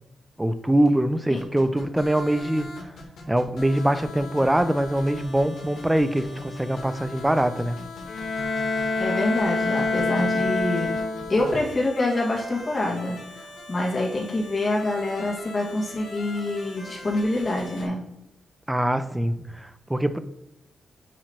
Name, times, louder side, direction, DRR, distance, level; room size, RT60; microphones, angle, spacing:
voice 1, 0.4-2.7 3.3-7.8 18.7-20.2, right 1 dB, 5° right, 11 dB, 0.4 m, -23 dB
sound 1, 1.4-17.9, left 2 dB, 70° left, 1.8 m, -40 dB
Bowed string instrument, 8.1-11.6, left 3 dB, 40° left, 0.7 m, -26 dB
voice 2, 9.0-10.9 11.3-13.2 13.7-18.1, left 2 dB, 25° left, -2 dB, 1.8 m, -26 dB
9.1 x 3.1 x 4.4 m, 0.87 s
wide cardioid pair, 150°, 0 cm